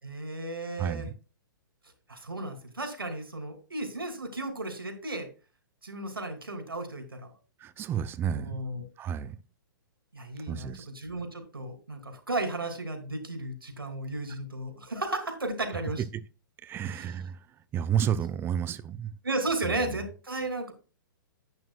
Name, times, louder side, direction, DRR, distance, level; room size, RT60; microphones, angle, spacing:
voice 1, 0.0-1.1 2.1-5.3 5.8-7.3 8.3-8.8 10.1-16.0 16.8-17.1 19.2-20.7, right 2 dB, 85° right, 3.1 m, -34 dB
voice 2, 0.8-1.1 7.6-8.6 9.0-9.4 10.5-10.9 16.6-17.4 17.7-19.1 19.8-20.0, right 9 dB, 20° right, 0.7 m, -31 dB
11.0 x 9.1 x 2.4 m
figure-of-eight pair, 115°, 12 cm